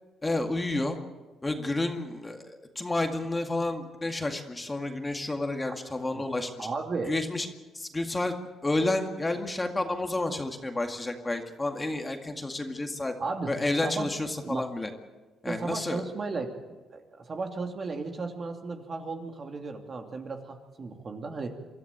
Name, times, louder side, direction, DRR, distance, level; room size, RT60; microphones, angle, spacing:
voice 1, 0.2-1.0 1.4-6.7 7.1-7.5 7.7-8.3 8.6-13.1 13.5-14.9 15.4-16.0, left 2 dB, 20° left, 4 dB, 2.1 m, -30 dB
voice 2, 6.6-7.2 13.2-13.5 13.8-14.1 14.4-14.7 15.5-16.5 16.9-21.5, right 3 dB, 40° right, 4 dB, 2.8 m, -34 dB
24.5 x 13.5 x 8.9 m, 1.3 s
cardioid pair, 90°, 0 cm